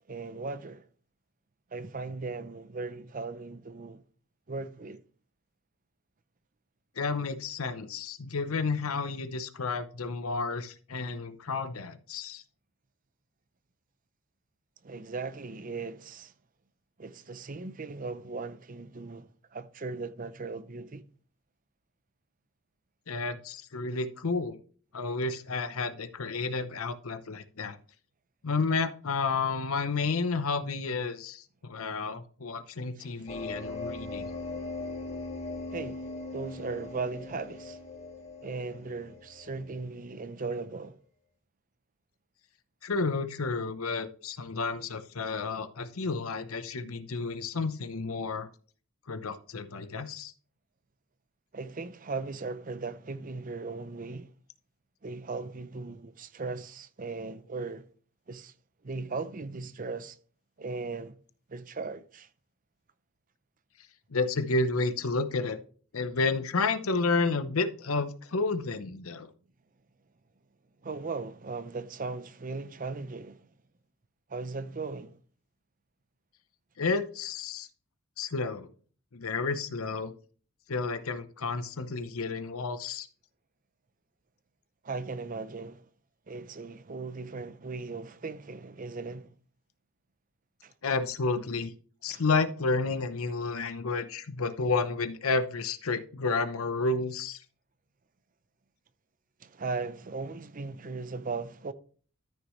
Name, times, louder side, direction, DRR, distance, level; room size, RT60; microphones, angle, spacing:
voice 1, 0.1-0.9 1.7-4.0 4.5-5.0 14.8-16.3 17.0-21.0 32.9-33.2 35.7-36.1 36.3-37.8 38.4-41.0 51.5-54.3 55.0-57.9 58.3-58.5 58.8-60.2 60.6-61.2 61.5-62.3 70.8-73.4 74.3-75.2 84.8-85.8 86.3-89.3 90.6-90.7 92.1-92.2 99.4-101.7, right 4 dB, 40° right, 0.6 m, -38 dB
voice 2, 7.0-12.4 23.1-24.6 24.9-27.8 28.4-34.3 42.8-48.5 49.1-50.3 64.1-65.6 65.9-69.3 76.8-77.7 78.2-78.7 79.1-80.1 80.7-83.1 90.8-91.7 92.0-97.4, left 4 dB, 85° left, 0.8 m, -31 dB
sound 1, 33.3-39.8, left 2 dB, 30° left, 2.2 m, -40 dB
13.5 x 6.2 x 3.1 m
head